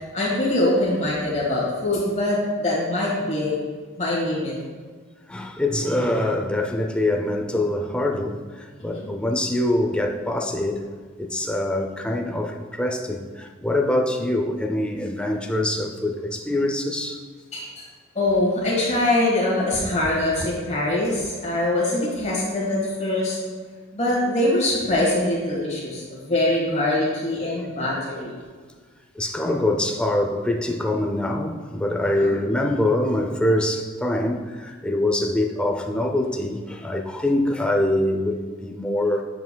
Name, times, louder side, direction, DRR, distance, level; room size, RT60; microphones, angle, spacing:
voice 1, 0.0-3.6 3.9-4.5 8.8-9.1 17.5-17.9 18.1-23.4 23.9-28.3 32.1-32.4, left 1 dB, 35° left, 1.5 m, -23 dB
voice 2, 5.3-10.9 11.2-17.2 27.8-27.9 29.2-39.2, left 1 dB, 5° left, 0.4 m, -24 dB
8.0 x 7.2 x 2.2 m
head